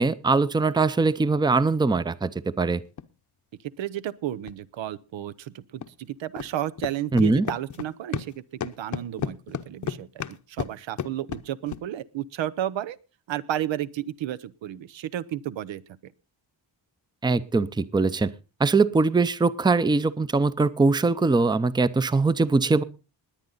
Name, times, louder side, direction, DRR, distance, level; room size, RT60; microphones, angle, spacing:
voice 1, 0.0-2.3 2.6-2.8 7.1-7.4 17.2-18.3 18.6-22.8, right 3 dB, 10° right, 16 dB, 0.6 m, -22 dB
sound 1, 2.9-3.0 4.5-4.6 5.8-5.9 6.4-6.5 6.8-8.3 8.6-11.8, left 8 dB, 45° left, 0.8 m, -33 dB
voice 2, 3.8-8.3 8.6-13.0 13.3-16.1, right 12 dB, 85° right, 14 dB, 0.9 m, -32 dB
20.5 x 9.1 x 4.0 m, 0.32 s
wide cardioid pair, 125°, 44 cm